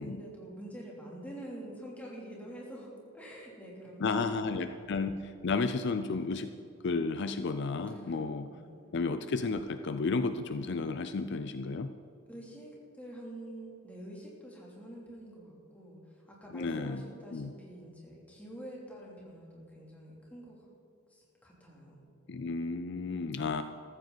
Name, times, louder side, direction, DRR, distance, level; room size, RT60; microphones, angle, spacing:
voice 1, 0.0-4.5 7.9-8.2 8.5-8.9 12.3-16.0 16.3-20.6 21.1-22.0, right 1 dB, 5° left, -4 dB, 3.0 m, -47 dB
voice 2, 4.0-6.5 6.8-8.5 8.9-11.9 16.5-17.0 17.3-17.5 22.3-23.6, left 4 dB, 55° left, 10 dB, 0.5 m, -32 dB
14.5 x 14.0 x 4.0 m, 2.6 s
head